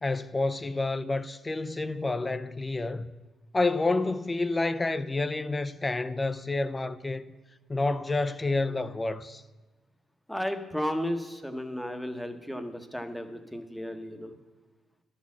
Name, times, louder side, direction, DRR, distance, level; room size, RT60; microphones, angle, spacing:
voice 1, 0.0-3.1 3.5-7.3 7.7-9.4, left 2 dB, 20° left, 0.4 m, -29 dB
voice 2, 10.3-14.4, equal, 5° left, 0.8 m, -34 dB
11.5 x 4.2 x 7.2 m
cardioid pair, 90°, 0 cm